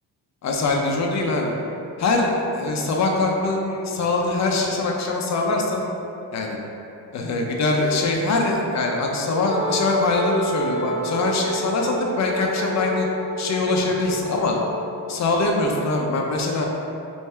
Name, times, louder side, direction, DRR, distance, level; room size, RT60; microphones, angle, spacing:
voice 1, 0.4-1.5 2.0-5.8 6.3-6.6 7.1-13.1 13.4-14.6 15.1-16.7, left 3 dB, 50° left, 0 dB, 0.7 m, -23 dB
Wind instrument woodwind instrument, 9.5-15.1, right 2 dB, 30° right, 0.6 m, -30 dB
3.4 x 2.7 x 4.3 m, 2.9 s
cardioid pair, 100°, 37 cm